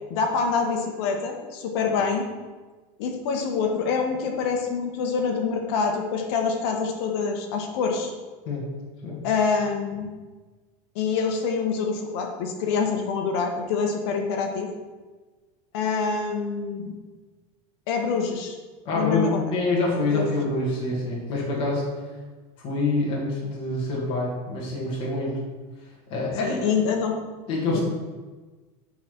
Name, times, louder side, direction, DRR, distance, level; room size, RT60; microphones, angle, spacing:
voice 1, 0.1-2.2 3.0-8.1 9.2-10.1 10.9-14.7 15.7-16.9 17.9-18.6 18.9-19.4 20.1-20.3 26.4-27.2 27.7-27.8, left 5 dB, 60° left, 3 dB, 1.5 m, -26 dB
voice 2, 18.8-21.9 22.6-25.4 25.8-26.6 26.8-26.9 27.5-27.8, left 2 dB, 35° left, -4 dB, 2.2 m, -26 dB
8.6 x 4.1 x 6.1 m, 1.3 s
supercardioid pair, 160°, 15 cm